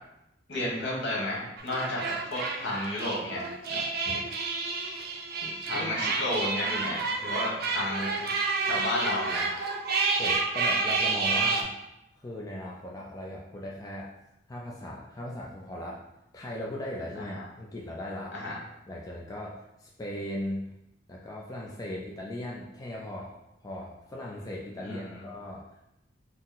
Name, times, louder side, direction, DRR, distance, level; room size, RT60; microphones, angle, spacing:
voice 1, 0.5-3.4 3.7-3.8 5.6-9.4 17.3-17.4 18.3-18.5 24.8-25.2, left 1 dB, 65° left, -4 dB, 1.3 m, -32 dB
sound 1, 1.6-11.6, right 4 dB, 55° right, 0.5 m, -29 dB
voice 2, 5.0-5.9 10.2-11.7 12.2-14.1 14.5-16.0 16.3-18.4 18.9-20.7 21.1-23.3 23.6-25.6, left 1 dB, 20° left, -3 dB, 0.4 m, -38 dB
4.1 x 2.0 x 3.8 m, 0.86 s
head